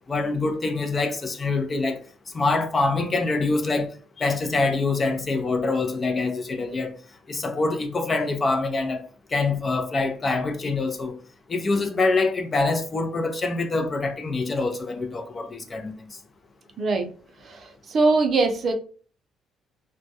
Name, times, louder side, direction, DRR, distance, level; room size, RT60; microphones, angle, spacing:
voice 1, 0.1-2.0 2.3-3.9 4.2-6.9 7.3-9.0 9.3-11.2 11.5-15.9, left 3 dB, 35° left, 0.5 m, -25 dB
voice 2, 16.8-17.1 17.4-18.7, right 3 dB, 50° right, 0.5 m, -22 dB
2.2 x 2.1 x 2.7 m
cardioid pair, 90°, 0 cm